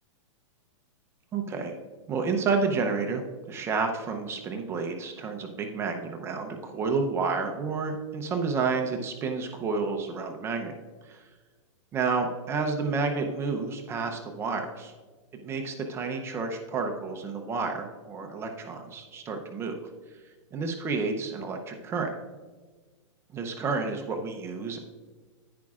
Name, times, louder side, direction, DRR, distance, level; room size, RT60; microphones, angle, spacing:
voice 1, 1.3-1.7 2.1-10.7 11.0-11.2 11.9-14.9 15.3-19.7 20.5-22.1 23.3-24.8, right 4 dB, 15° right, 4 dB, 0.6 m, -30 dB
10.5 x 9.7 x 2.4 m, 1.4 s
hypercardioid pair, 155°, 16 cm